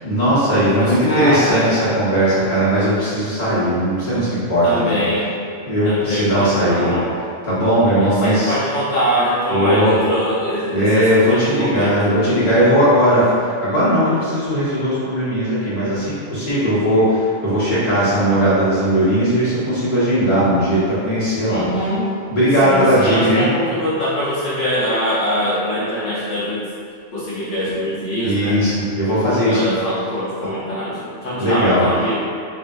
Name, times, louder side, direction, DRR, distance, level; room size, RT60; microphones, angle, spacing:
voice 1, 0.0-4.9 5.6-7.0 7.4-8.5 9.5-10.0 10.7-21.6 22.3-23.5 28.2-29.7 31.4-31.8, equal, 40° left, -12 dB, 1.5 m, -18 dB
voice 2, 0.7-1.7 4.6-5.3 5.8-7.1 8.0-12.1 21.5-22.1 22.6-26.6 27.1-28.6 29.3-32.2, equal, 70° left, -11 dB, 1.2 m, -23 dB
4.8 x 3.0 x 2.6 m, 2.2 s
omnidirectional pair, 1.3 m